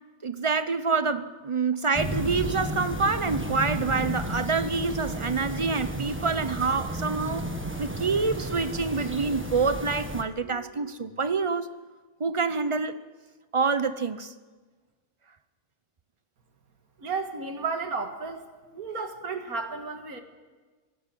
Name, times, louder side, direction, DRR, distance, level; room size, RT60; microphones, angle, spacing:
voice 1, 0.2-7.5 7.8-11.7 12.2-13.0 13.5-14.3, right 4 dB, 40° right, 13 dB, 0.4 m, -27 dB
sound 1, 1.9-10.2, right 1 dB, 10° right, 1.5 m, -33 dB
voice 2, 17.0-18.5 18.7-20.2, right 4 dB, 80° right, 6 dB, 2.2 m, -33 dB
17.5 x 16.5 x 9.2 m, 1.3 s
omnidirectional pair, 1.5 m